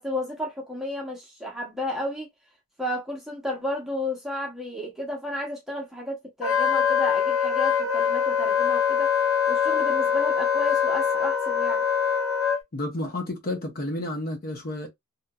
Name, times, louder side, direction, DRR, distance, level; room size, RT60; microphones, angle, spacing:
voice 1, 0.0-2.3 2.8-9.1 9.5-11.9, left 1 dB, ahead, 0.8 m, -32 dB
Wind instrument woodwind instrument, 6.4-12.6, left 7 dB, 65° left, 1.1 m, -23 dB
voice 2, 12.7-14.9, left 1 dB, 45° left, 0.7 m, -31 dB
2.8 x 2.5 x 2.2 m
head